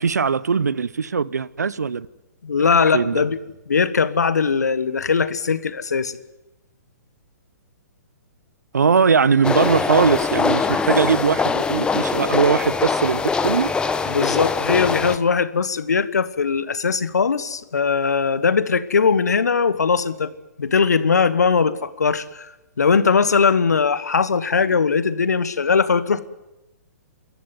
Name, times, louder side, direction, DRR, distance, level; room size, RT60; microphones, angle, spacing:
voice 1, 0.0-2.1 2.9-3.2 8.7-13.7, right 5 dB, 85° right, 0.8 m, -20 dB
voice 2, 2.4-3.4 3.7-6.1 14.1-20.3 20.6-22.5 22.8-26.2, left 5 dB, 80° left, 1.4 m, -20 dB
sound 1, 9.4-15.2, left 5 dB, 10° left, 1.0 m, -22 dB
27.5 x 14.0 x 9.5 m
hypercardioid pair, 130°, 9 cm